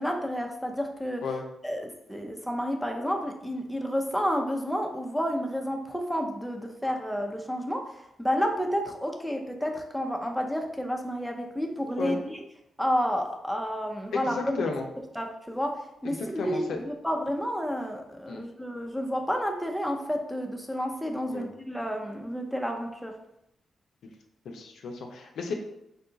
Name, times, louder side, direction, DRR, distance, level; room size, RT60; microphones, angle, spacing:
voice 1, 0.0-1.2 1.6-12.4 12.8-14.6 15.2-23.1, equal, ahead, 2 dB, 0.6 m, -30 dB
voice 2, 14.1-14.9 16.0-16.8 18.3-18.4 21.3-21.5 24.4-25.5, left 4 dB, 80° left, 2 dB, 0.5 m, -33 dB
3.8 x 2.3 x 3.8 m, 0.82 s
supercardioid pair, 55°, 0 cm